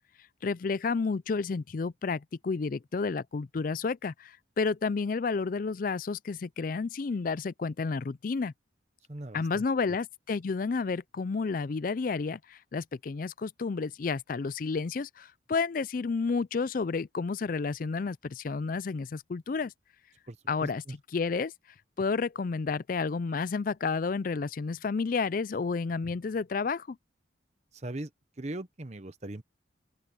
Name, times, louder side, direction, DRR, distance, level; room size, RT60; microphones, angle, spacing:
voice 1, 0.4-8.5 9.3-19.7 20.5-20.8 21.1-21.5 22.0-27.0, left 4 dB, 45° left, 0.4 m, -31 dB
voice 2, 9.1-10.0 20.3-20.9 27.7-28.1 28.4-29.4, right 1 dB, 35° right, 0.9 m, -40 dB
open air
head